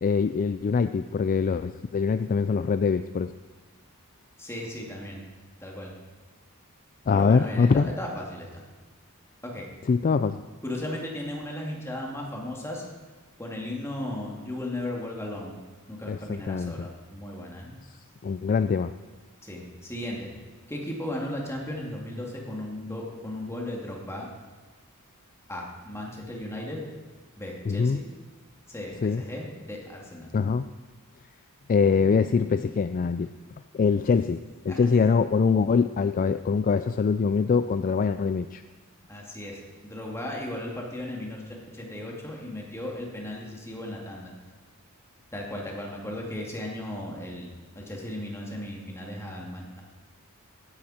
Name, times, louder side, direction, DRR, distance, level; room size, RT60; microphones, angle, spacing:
voice 1, 0.0-3.3 7.1-7.9 9.9-10.4 16.1-16.9 18.2-18.9 27.7-28.0 29.0-29.2 30.3-30.7 31.7-33.3 33.7-38.6, left 5 dB, 40° left, 11 dB, 0.3 m, -23 dB
voice 2, 4.4-5.2 5.6-5.9 7.1-8.6 9.4-9.7 10.6-12.8 13.4-15.6 15.9-17.7 19.4-20.3 20.7-24.3 25.5-26.8 27.4-28.0 28.7-30.4 34.7-34.8 39.1-44.3 45.3-49.8, left 1 dB, 10° left, -2 dB, 2.5 m, -36 dB
16.0 x 11.5 x 4.4 m, 1.3 s
head